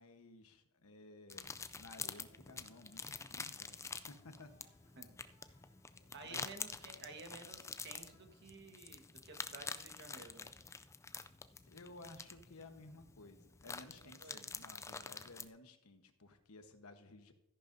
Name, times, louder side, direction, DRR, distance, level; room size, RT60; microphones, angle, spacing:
voice 1, 0.0-4.7 6.3-6.4 11.7-17.3, left 2 dB, 80° left, 7 dB, 1.1 m, -56 dB
sound 1, 1.3-15.5, left 5 dB, 15° left, 0.3 m, -48 dB
sound 2, 1.8-9.1, left 1 dB, 30° left, 2.7 m, -71 dB
voice 2, 6.1-10.5 14.0-14.4, right 3 dB, 55° right, 4 dB, 1.4 m, -53 dB
13.5 x 10.5 x 2.7 m, 0.84 s
head